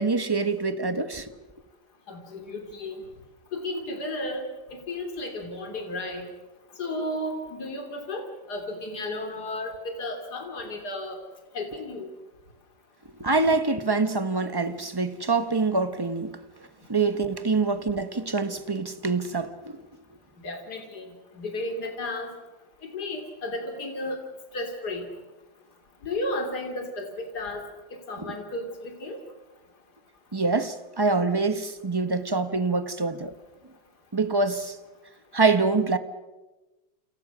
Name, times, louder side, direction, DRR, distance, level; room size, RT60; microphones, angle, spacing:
voice 1, 0.0-1.3 13.2-16.4 16.9-19.8 28.2-28.3 30.3-33.3 34.1-34.8 35.3-36.0, right 3 dB, 15° right, 1.0 m, -25 dB
voice 2, 2.1-3.0 3.5-6.2 6.8-9.7 10.0-11.2 11.5-12.1 20.4-21.1 21.3-22.3 22.9-24.2 24.5-25.1 26.0-27.6 28.1-29.2, left 1 dB, 60° left, 3.6 m, -33 dB
29.0 x 28.5 x 6.2 m
omnidirectional pair, 2.0 m